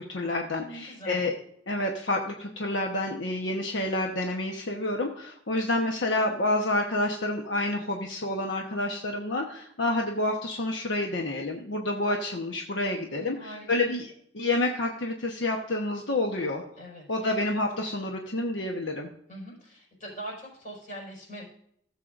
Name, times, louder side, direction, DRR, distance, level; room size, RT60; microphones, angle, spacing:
voice 1, 0.0-1.3 1.7-16.6 17.1-19.1, left 2 dB, 80° left, 1 dB, 1.0 m, -29 dB
voice 2, 0.6-1.2 13.1-13.9 16.8-17.3 19.3-21.5, right 1 dB, 40° left, -2 dB, 4.7 m, -43 dB
16.0 x 7.5 x 2.5 m, 0.70 s
head